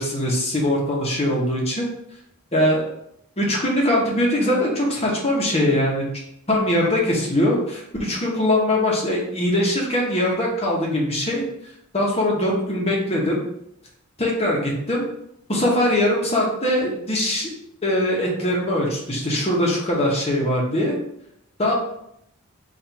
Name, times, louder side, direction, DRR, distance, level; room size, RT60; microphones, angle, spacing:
voice 1, 0.0-1.9 2.5-2.8 3.4-6.1 6.5-11.5 11.9-13.4 14.2-15.1 15.5-17.5 17.8-21.0 21.6-21.7, left 1 dB, 25° left, -2 dB, 1.0 m, -21 dB
4.2 x 2.5 x 4.4 m, 0.76 s
head